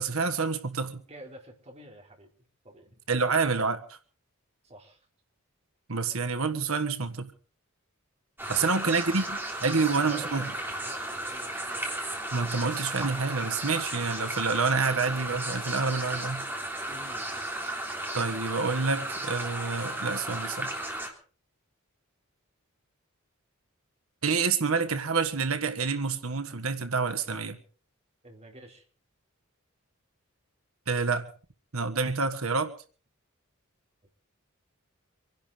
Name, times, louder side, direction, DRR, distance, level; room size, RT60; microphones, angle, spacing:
voice 1, 0.0-1.0 3.1-4.0 5.9-7.3 8.5-10.5 12.3-16.5 18.1-20.8 24.2-27.6 30.9-31.3 31.7-32.7, right 4 dB, 80° right, 1.6 m, -28 dB
voice 2, 1.1-2.3 2.6-3.4 4.6-5.1 8.4-8.7 9.0-11.9 16.9-17.5 28.2-28.9, right 1 dB, 30° right, 4.1 m, -49 dB
sound 1, 8.4-21.1, right 1 dB, 10° right, 3.5 m, -35 dB
25.5 x 11.5 x 5.0 m
head